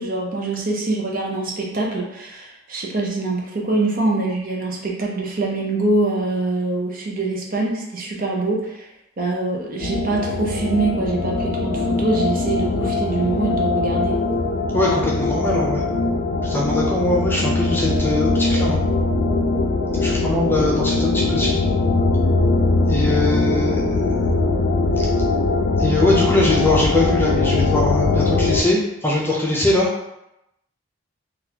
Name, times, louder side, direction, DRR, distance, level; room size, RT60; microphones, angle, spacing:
voice 1, 0.0-8.9 9.2-14.2, right 3 dB, 45° right, -1 dB, 0.6 m, -24 dB
sound 1, 9.8-28.6, left 3 dB, 65° left, 0.3 m, -21 dB
voice 2, 14.7-15.8 16.4-18.8 20.0-21.6 22.9-24.6 24.9-25.0 25.8-29.9, left 1 dB, 10° left, -4 dB, 0.5 m, -22 dB
3.7 x 2.4 x 2.8 m, 0.85 s
head